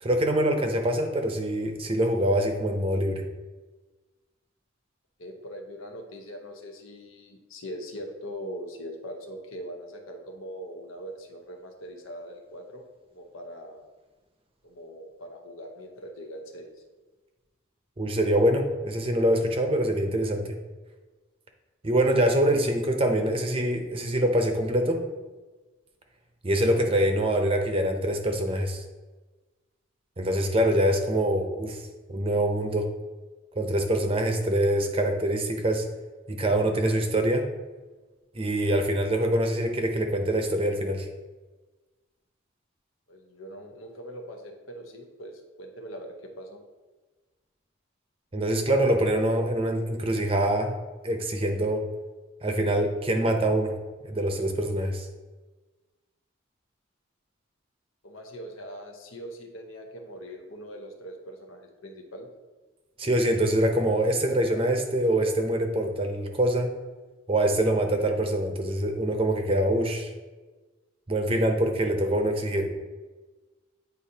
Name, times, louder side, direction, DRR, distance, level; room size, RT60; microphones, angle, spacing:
voice 1, 0.0-3.2 18.0-20.6 21.8-25.0 26.4-28.8 30.2-31.8 32.1-32.9 33.6-35.8 36.3-37.5 38.3-41.1 48.3-50.8 51.0-51.8 52.4-53.7 54.1-55.1 63.0-66.7 67.3-70.1 71.1-72.7, right 1 dB, 30° right, 4 dB, 0.6 m, -24 dB
voice 2, 5.2-12.8 13.1-13.9 14.6-16.7 43.1-46.6 58.0-62.3, equal, 90° left, 3 dB, 0.9 m, -41 dB
9.1 x 4.0 x 2.8 m, 1.3 s
head